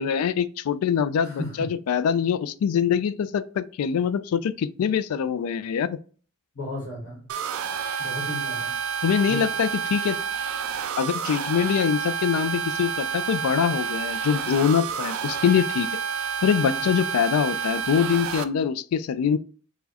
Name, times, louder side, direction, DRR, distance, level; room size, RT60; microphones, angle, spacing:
voice 1, 0.0-6.0 9.0-10.2 11.0-15.9 16.4-19.4, left 7 dB, 85° left, 0.3 m, -24 dB
voice 2, 1.2-1.7 6.5-7.2 8.0-8.7 9.3-9.5 16.6-16.9, left 2 dB, 65° left, 1.4 m, -34 dB
sound 1, 7.3-18.4, right 7 dB, 70° right, 0.3 m, -29 dB
4.4 x 2.2 x 2.8 m
head